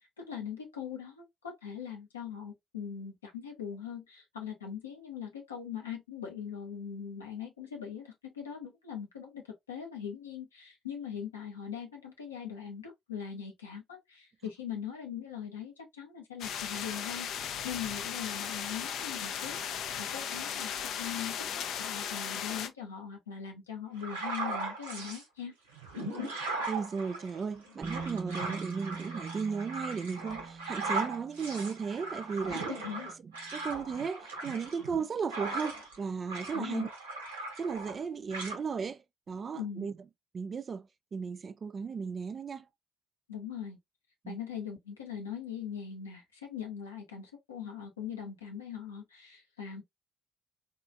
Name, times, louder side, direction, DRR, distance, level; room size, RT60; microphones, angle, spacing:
voice 1, 0.0-25.5 32.8-33.1 36.5-36.9 39.5-39.9 43.3-43.8 44.3-49.8, left 8 dB, 85° left, 0.7 m, -41 dB
sound 1, 16.4-22.7, left 8 dB, 65° left, 0.4 m, -36 dB
sound 2, 24.0-25.2 25.7-36.0 36.3-38.0 38.3-38.6, right 3 dB, 85° right, 0.6 m, -38 dB
voice 2, 26.7-32.9 33.2-36.9 37.6-40.0 40.3-42.7 44.2-44.4, right 5 dB, 45° right, 0.4 m, -36 dB
Bass guitar, 27.8-33.9, right 5 dB, 20° right, 1.0 m, -44 dB
3.6 x 2.4 x 2.3 m
figure-of-eight pair, 45°, 0 cm